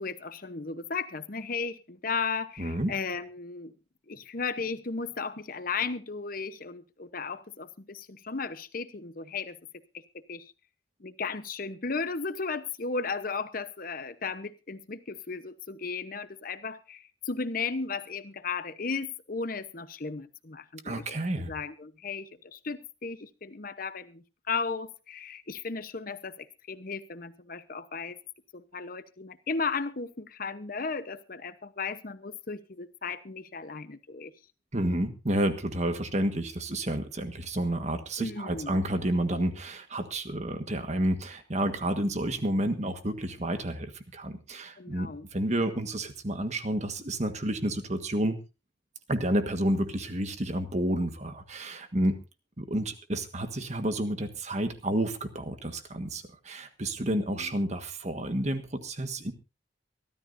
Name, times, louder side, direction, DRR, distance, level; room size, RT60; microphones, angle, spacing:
voice 1, 0.0-3.7 4.1-9.6 9.9-10.0 10.3-10.5 11.0-21.0 21.5-28.2 28.5-34.3 38.2-38.8 44.8-45.3 57.1-57.5, left 4 dB, 50° left, 12 dB, 1.0 m, -35 dB
voice 2, 2.6-2.9 20.8-21.5 34.7-48.4 49.1-52.2 52.6-59.3, right 1 dB, 40° right, 8 dB, 1.5 m, -30 dB
24.0 x 13.0 x 2.7 m, 0.30 s
head